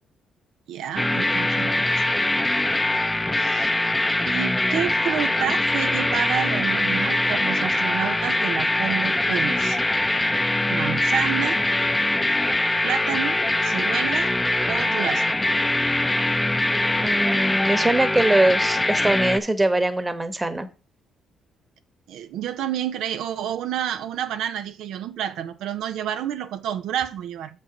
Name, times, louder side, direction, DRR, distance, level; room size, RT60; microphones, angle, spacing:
voice 1, 0.7-2.0 3.3-3.7 4.2-9.8 10.7-11.6 12.8-14.3 14.7-15.4 22.1-27.5, right 10 dB, 85° right, 0.6 m, -29 dB
sound 1, 1.0-19.4, left 1 dB, 10° left, 0.6 m, -22 dB
voice 2, 17.0-20.7, right 2 dB, 15° right, 1.1 m, -22 dB
6.5 x 5.6 x 5.1 m
cardioid pair, 90°, 0 cm